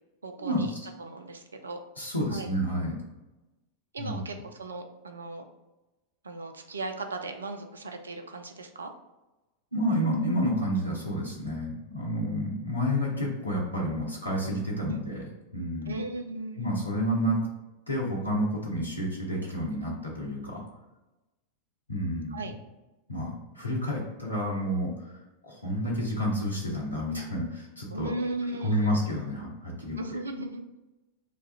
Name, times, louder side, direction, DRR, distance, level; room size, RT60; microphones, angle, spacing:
voice 1, 0.2-0.7 1.0-1.8 2.3-2.5 3.9-5.4 6.2-8.9 14.9-15.0 15.9-16.9 22.3-22.5 27.9-29.1 30.0-30.6, right 2 dB, 75° right, 5 dB, 0.4 m, -37 dB
voice 2, 2.0-3.0 4.0-4.2 9.7-15.2 15.5-16.0 16.6-17.4 17.9-20.6 21.9-22.4 23.1-28.1 28.6-30.0, equal, 85° left, -3 dB, 0.8 m, -30 dB
3.2 x 2.3 x 4.0 m, 1.0 s
figure-of-eight pair, 90°, 0 cm